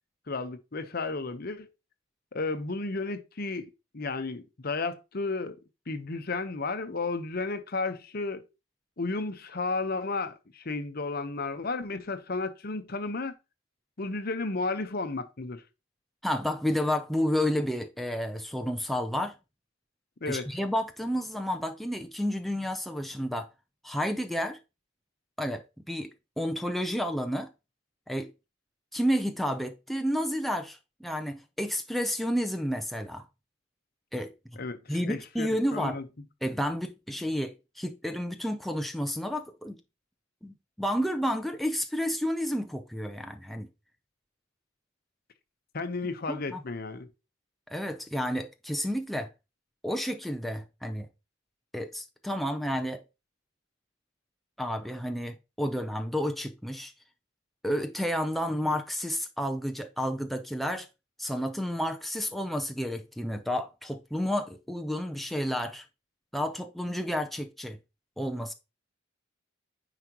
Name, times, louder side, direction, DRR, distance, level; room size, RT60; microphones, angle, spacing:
voice 1, 0.3-1.7 2.3-5.6 5.9-8.4 9.0-13.3 14.0-15.6 20.2-20.5 34.6-36.0 45.7-47.1, left 3 dB, 55° left, 0.9 m, -33 dB
voice 2, 16.2-19.3 20.3-23.5 23.8-24.6 25.4-26.1 26.4-27.5 28.1-28.3 28.9-33.2 34.1-34.3 34.9-36.0 36.4-39.8 40.4-43.7 46.3-46.6 47.7-49.3 49.8-51.1 51.7-53.0 54.6-56.9 57.6-60.9 61.2-65.8 66.3-67.8 68.2-68.5, equal, ahead, 0.5 m, -31 dB
9.6 x 5.0 x 2.9 m
head